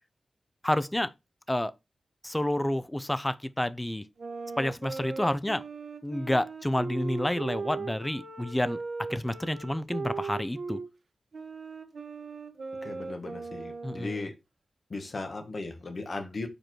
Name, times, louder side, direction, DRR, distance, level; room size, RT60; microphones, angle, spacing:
voice 1, 0.6-1.1 1.5-1.7 2.2-4.0 4.6-5.6 6.0-8.8 9.1-10.8 13.8-14.3, left 1 dB, 15° left, 0.6 m, -29 dB
sound 1, 4.2-10.9 11.3-14.3, right 4 dB, 75° right, 1.1 m, -38 dB
voice 2, 12.8-14.4 14.9-16.5, left 3 dB, 55° left, 1.4 m, -37 dB
5.2 x 4.5 x 4.4 m
wide cardioid pair, 90°, 0 cm